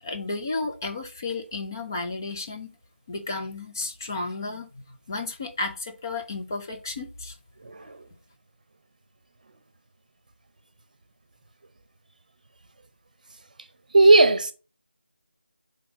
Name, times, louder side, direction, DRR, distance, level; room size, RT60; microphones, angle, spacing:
voice 1, 0.0-2.7 3.1-7.4, left 3 dB, 20° left, 0.5 m, -33 dB
voice 2, 7.6-8.0 13.9-14.5, right 2 dB, 40° right, 0.8 m, -17 dB
5.9 x 3.5 x 4.7 m
figure-of-eight pair, 170°, 6 cm